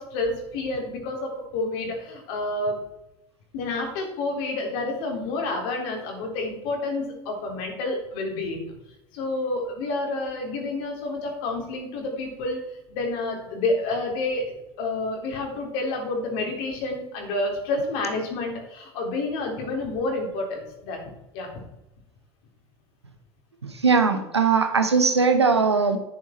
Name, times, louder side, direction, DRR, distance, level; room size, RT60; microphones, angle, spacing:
voice 1, 0.0-2.8 3.5-8.7 9.1-12.6 12.9-21.0 21.3-21.5, left 2 dB, 60° left, 1 dB, 3.7 m, -29 dB
voice 2, 23.6-26.0, right 5 dB, 90° right, 7 dB, 1.2 m, -20 dB
10.0 x 9.8 x 4.5 m, 0.90 s
figure-of-eight pair, 75°, 14 cm